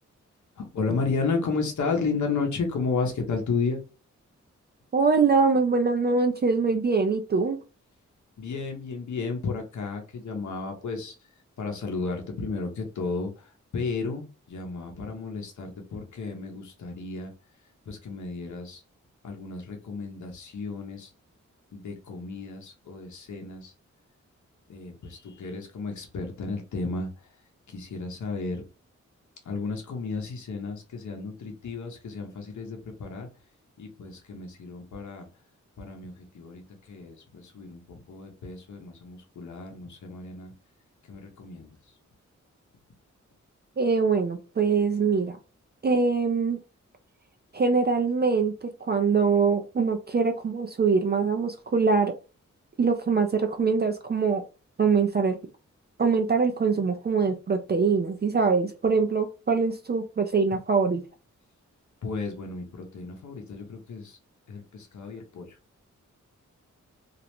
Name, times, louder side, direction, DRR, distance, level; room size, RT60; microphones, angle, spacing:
voice 1, 0.6-3.8 8.4-11.1 11.6-17.3 17.9-18.8 19.2-21.1 21.7-23.7 24.7-27.3 27.7-28.6 29.4-33.3 33.8-35.3 35.8-40.5 41.1-41.7 62.0-64.2 64.5-65.6, left 4 dB, 70° left, 0.8 m, -33 dB
voice 2, 4.9-7.6 43.8-45.4 45.8-46.6 47.5-52.2 52.8-54.4 54.8-55.4 56.0-61.0, right 4 dB, 35° right, 0.4 m, -23 dB
2.5 x 2.0 x 2.9 m
cardioid pair, 50°, 30 cm